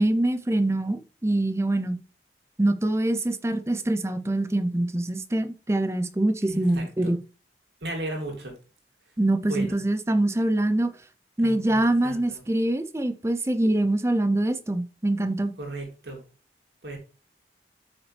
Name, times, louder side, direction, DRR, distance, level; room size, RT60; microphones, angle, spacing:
voice 1, 0.0-2.0 2.6-7.2 9.2-10.9 11.4-15.5, right 1 dB, 15° right, 0.6 m, -24 dB
voice 2, 6.5-7.1 7.8-8.5 9.5-9.7 11.4-12.4 15.6-16.2 16.8-17.0, right 1 dB, 80° right, 2.7 m, -35 dB
8.5 x 5.9 x 3.3 m
head